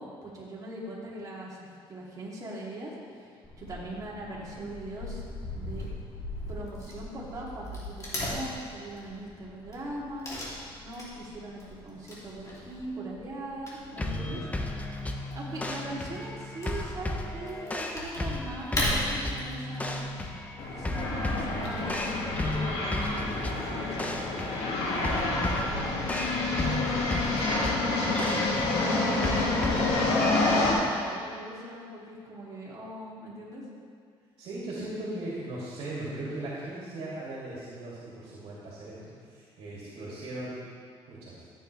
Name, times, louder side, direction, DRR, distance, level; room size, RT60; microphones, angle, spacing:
voice 1, 0.0-2.9 3.6-5.2 5.5-5.9 6.5-10.3 10.8-14.4 15.3-20.1 20.7-22.1 22.5-24.4 25.6-26.0 26.7-33.6, right 1 dB, 35° right, -5 dB, 2.9 m, -40 dB
Wood / Tearing, 3.4-23.1, left 1 dB, 30° left, 3.1 m, -39 dB
sound 1, 14.0-30.7, left 2 dB, 15° left, 0.8 m, -35 dB
voice 2, 14.1-14.4 25.1-25.4 34.4-40.6 41.1-41.4, right 1 dB, 65° right, -7 dB, 2.8 m, -38 dB
sound 2, 20.6-30.7, left 2 dB, 75° left, 2.1 m, -28 dB
13.5 x 9.1 x 3.4 m, 2.1 s
cardioid pair, 115°, 10 cm